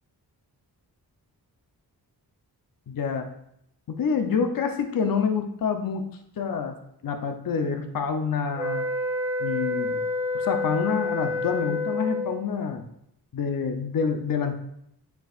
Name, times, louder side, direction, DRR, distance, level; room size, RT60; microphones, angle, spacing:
voice 1, 2.9-3.3 3.9-6.0 6.4-6.8 7.0-8.8 9.4-10.0 10.3-12.8 13.3-14.6, left 6 dB, 60° left, 6 dB, 0.7 m, -27 dB
sound 1, 8.6-12.5, left 2 dB, 5° right, 0.6 m, -28 dB
9.2 x 4.6 x 2.4 m, 0.74 s
wide cardioid pair, 105°, 39 cm